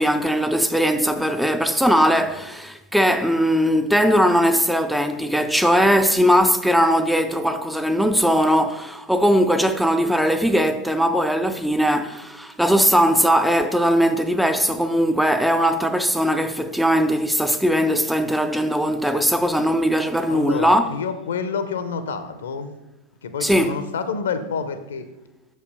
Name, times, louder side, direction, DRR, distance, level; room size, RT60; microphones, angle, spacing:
voice 1, 0.0-20.9 23.4-23.8, equal, ahead, 0.4 m, -19 dB
voice 2, 20.3-22.7 23.2-25.1, left 5 dB, 65° left, 0.6 m, -28 dB
6.5 x 5.5 x 5.0 m
figure-of-eight pair, 90°, 0 cm